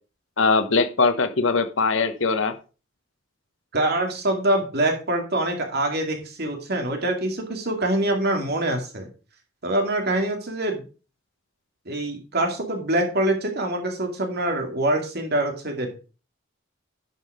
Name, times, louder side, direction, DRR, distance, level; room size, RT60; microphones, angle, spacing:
voice 1, 0.4-2.5, left 4 dB, 65° left, 9 dB, 1.1 m, -21 dB
voice 2, 3.7-9.1 9.6-10.8 11.9-15.9, right 1 dB, 50° right, 3 dB, 2.4 m, -25 dB
11.0 x 5.6 x 4.9 m, 0.35 s
head